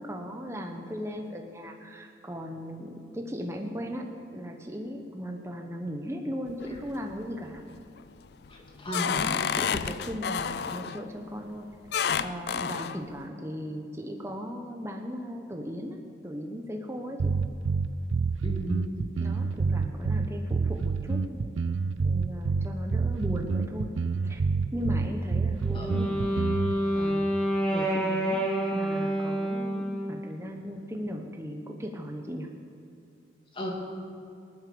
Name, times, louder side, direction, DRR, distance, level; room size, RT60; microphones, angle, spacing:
voice 1, 0.0-4.0 4.3-7.6 9.1-11.7 12.2-17.3 19.2-21.5 22.0-23.9 24.2-24.4 24.7-26.2 26.9-27.3 27.7-28.4 28.7-32.5, equal, 15° right, 2 dB, 0.9 m, -37 dB
sound 1, 6.5-7.1 7.6-8.0 8.4-11.0 11.9-13.0, left 7 dB, 55° left, 0.4 m, -30 dB
voice 2, 8.5-9.3 18.4-18.9 25.7-26.0 33.5-33.7, equal, 25° left, 0 dB, 2.3 m, -35 dB
sound 2, 17.2-26.8, right 4 dB, 85° right, 0.5 m, -28 dB
Wind instrument woodwind instrument, 25.6-30.2, equal, 5° left, 1.7 m, -28 dB
19.5 x 9.7 x 6.9 m, 2.6 s
head